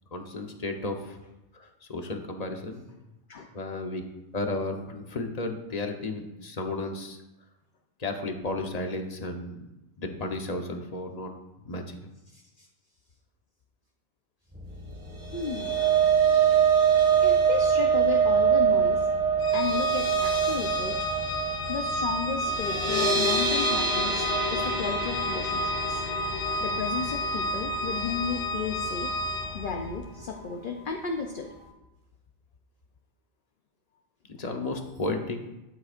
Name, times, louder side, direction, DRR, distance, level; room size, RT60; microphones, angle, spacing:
voice 1, 0.1-1.2 1.5-2.9 3.5-4.0 4.3-7.2 8.0-9.7 10.0-11.3 11.6-12.0 34.3-35.4, left 2 dB, 35° left, 3 dB, 1.0 m, -33 dB
voice 2, 12.3-12.7 15.3-15.8 16.5-16.6 17.2-19.1 19.5-21.0 21.7-26.0 26.6-29.1 29.5-31.5, left 6 dB, 50° left, 3 dB, 0.8 m, -34 dB
sound 1, 14.5-30.1, left 1 dB, 10° right, 1.3 m, -43 dB
sound 2, 15.1-29.4 29.7-30.0 30.3-30.4, right 6 dB, 50° right, 1.4 m, -25 dB
Organ, 19.4-29.8, equal, 80° left, 1.1 m, -31 dB
12.5 x 7.8 x 2.5 m, 0.97 s
omnidirectional pair, 1.2 m